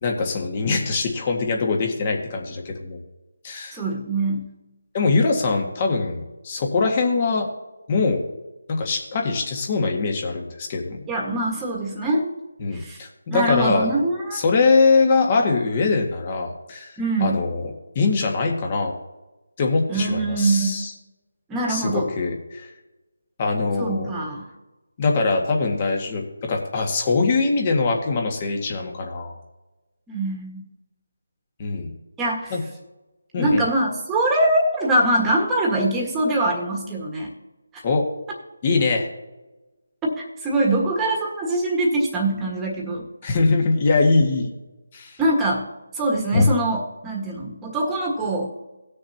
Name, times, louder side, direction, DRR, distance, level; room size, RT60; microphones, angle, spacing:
voice 1, 0.0-3.0 3.4-3.8 4.9-7.5 7.9-8.3 8.7-11.0 12.6-13.9 14.3-17.7 18.0-18.9 19.6-20.9 21.7-22.7 23.4-24.1 25.0-26.2 26.5-29.4 31.6-31.9 32.5-32.6 33.3-33.6 37.8-38.1 38.6-39.1 43.2-44.5 44.9-45.2 46.3-46.5, left 3 dB, 30° left, 2 dB, 1.8 m, -22 dB
voice 2, 3.7-4.5 11.1-12.3 12.7-13.0 13.3-14.4 17.0-17.4 19.9-20.8 21.5-22.1 23.8-24.4 30.1-30.6 32.2-32.6 33.3-37.3 37.7-37.8 40.0-43.1 45.2-45.7 45.9-48.5, right 1 dB, 10° right, -2 dB, 1.6 m, -23 dB
18.5 x 6.5 x 2.9 m, 1.1 s
figure-of-eight pair, 165°, 0 cm